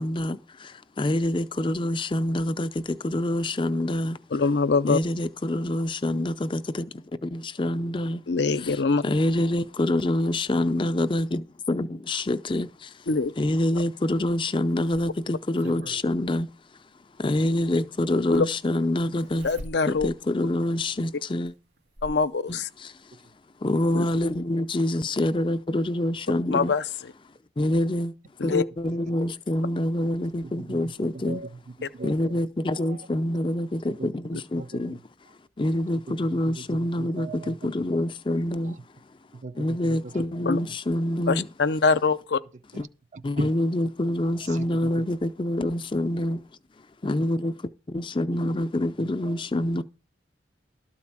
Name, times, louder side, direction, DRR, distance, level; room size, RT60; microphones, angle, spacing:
voice 1, 0.0-4.2 4.9-6.9 7.2-8.2 9.0-12.9 13.4-16.5 17.2-19.5 19.9-21.5 22.5-22.9 23.6-26.7 27.6-28.1 28.4-31.4 32.0-35.0 35.6-38.8 39.6-41.5 42.8-42.9 43.2-46.4 47.0-49.8, left 1 dB, 25° left, 0.5 m, -26 dB
voice 2, 4.3-5.0 8.3-9.0 13.1-13.3 18.3-18.5 19.4-20.1 22.0-22.7 23.9-24.1 26.5-27.1 28.4-28.6 34.3-34.4 40.5-40.6 41.3-42.4, left 4 dB, 70° left, 0.6 m, -23 dB
Zipper (clothing), 14.3-16.1 17.5-17.6 19.2-20.2 20.7-20.8 21.4-22.3 23.5-23.6 23.9-24.0, right 1 dB, 80° right, 2.2 m, -43 dB
voice 3, 30.4-32.4 32.7-33.1 33.9-34.1 34.6-35.0 36.1-37.5 38.6-38.8 39.4-40.4 42.7-42.9 43.1-43.5 44.4-44.9 49.2-49.4, right 3 dB, 40° right, 0.5 m, -39 dB
12.5 x 4.2 x 7.3 m
head